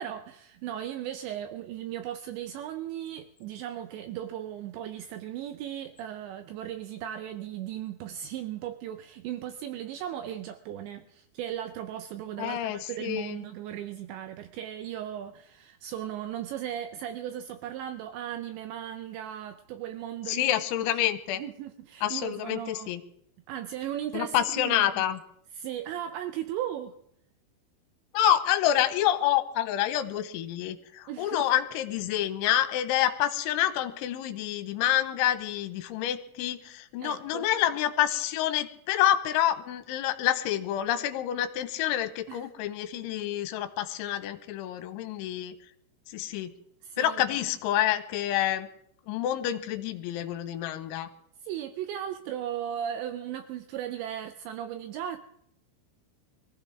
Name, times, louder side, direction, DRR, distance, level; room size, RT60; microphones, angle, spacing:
voice 1, 0.0-20.5 21.4-22.9 23.5-25.0 25.6-26.9 31.1-31.5 37.0-37.5 42.3-42.5 46.8-47.2 51.4-55.2, right 11 dB, 80° right, 2.7 m, -37 dB
voice 2, 12.4-13.4 20.3-21.4 22.0-23.0 24.1-25.2 28.1-45.5 46.1-46.5 47.0-48.7 49.1-51.1, left 12 dB, 80° left, 3.2 m, -28 dB
23.5 x 15.5 x 3.5 m
omnidirectional pair, 5.7 m